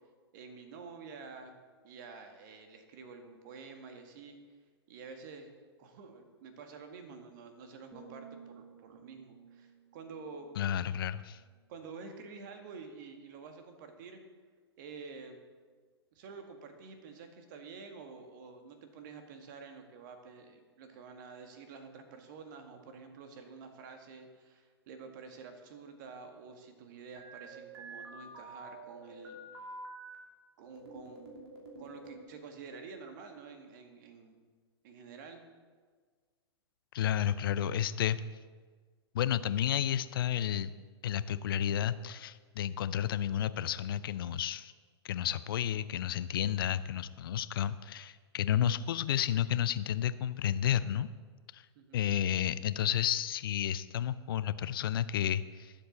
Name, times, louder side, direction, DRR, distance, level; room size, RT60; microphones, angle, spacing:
voice 1, 0.3-1.5 1.8-4.4 4.9-5.5 5.8-10.5 11.7-14.2 14.8-15.4 16.1-29.8 30.6-31.4 31.8-34.4 34.8-35.4 51.8-52.0, right 5 dB, 45° right, 6 dB, 1.8 m, -49 dB
sound 1, 7.9-11.9 12.3-12.6, right 6 dB, ahead, 1.7 m, -56 dB
voice 2, 10.6-11.4 36.9-38.2 39.1-40.7 41.0-44.7 45.0-51.1 51.5-51.6 51.9-55.7, left 10 dB, 55° left, 15 dB, 0.5 m, -31 dB
sound 2, 27.1-30.1 30.6-32.2, right 2 dB, 60° right, 2.9 m, -48 dB
20.0 x 7.8 x 4.0 m, 1.5 s
figure-of-eight pair, 110°, 14 cm